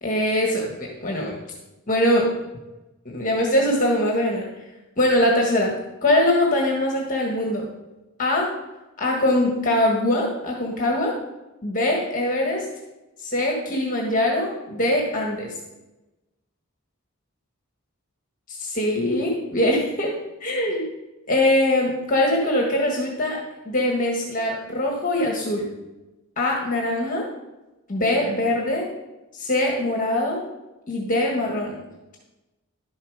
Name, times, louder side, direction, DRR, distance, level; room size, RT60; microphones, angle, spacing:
voice 1, 0.0-1.4 1.9-2.3 3.0-4.4 5.0-5.7 6.0-7.7 8.2-8.5 9.0-11.1 11.6-12.6 13.2-15.5 18.5-20.1 20.4-20.9 21.3-23.4 23.6-25.7 26.4-27.2 27.9-28.8 29.3-30.4 30.9-31.8, left 1 dB, 40° left, 0 dB, 1.6 m, -22 dB
11.5 x 7.3 x 4.9 m, 1.0 s
head